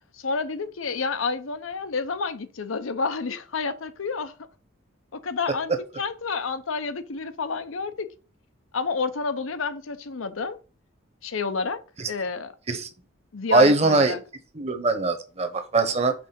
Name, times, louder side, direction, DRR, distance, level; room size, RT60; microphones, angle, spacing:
voice 1, 0.1-4.3 5.1-5.7 6.0-8.1 8.7-10.6 11.2-11.8 12.1-12.5 13.3-14.2, left 4 dB, 80° left, 0.7 m, -29 dB
voice 2, 13.5-14.1 14.5-16.1, right 3 dB, 30° right, 1.0 m, -21 dB
6.0 x 3.7 x 5.8 m
head